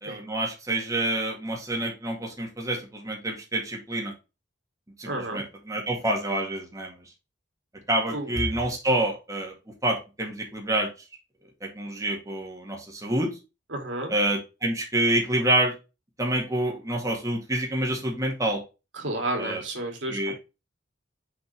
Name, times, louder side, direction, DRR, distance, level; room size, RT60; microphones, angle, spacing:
voice 1, 0.0-4.1 5.0-6.9 7.9-9.5 9.8-10.9 11.6-13.3 14.1-15.7 16.2-18.6 19.4-19.6 20.1-20.4, right 1 dB, 20° right, -1 dB, 2.0 m, -27 dB
voice 2, 5.1-5.4 8.1-8.3 13.7-14.1 18.9-20.4, right 1 dB, 80° right, 2 dB, 2.6 m, -31 dB
6.0 x 5.2 x 3.3 m, 0.27 s
head